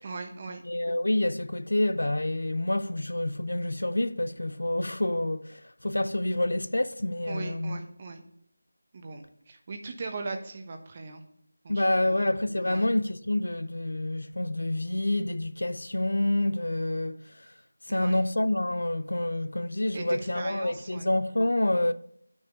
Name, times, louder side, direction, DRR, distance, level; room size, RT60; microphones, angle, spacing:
voice 1, 0.0-0.6 7.3-8.2 8.9-11.2 11.6-12.3 12.6-12.9 17.9-18.2 19.9-21.1, right 3 dB, 30° right, 1.0 m, -39 dB
voice 2, 0.7-5.6 5.8-7.8 11.7-17.2 17.9-21.9, left 1 dB, 85° left, 0.6 m, -27 dB
9.6 x 6.4 x 3.7 m
figure-of-eight pair, 170°, 0 cm